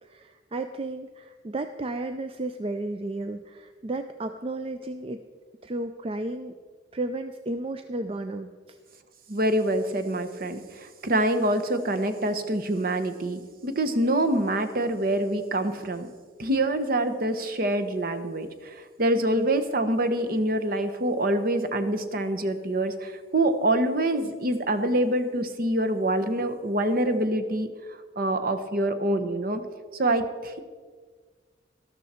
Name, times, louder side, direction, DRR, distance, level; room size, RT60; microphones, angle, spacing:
voice 1, 0.0-5.2 5.6-6.5 6.9-8.8 19.2-19.5, right 2 dB, 30° right, 8 dB, 0.4 m, -33 dB
voice 2, 9.3-16.1 16.4-27.7 28.2-29.6 30.0-30.6, right 1 dB, 50° right, 9 dB, 0.9 m, -26 dB
13.0 x 12.5 x 4.3 m, 1.6 s
head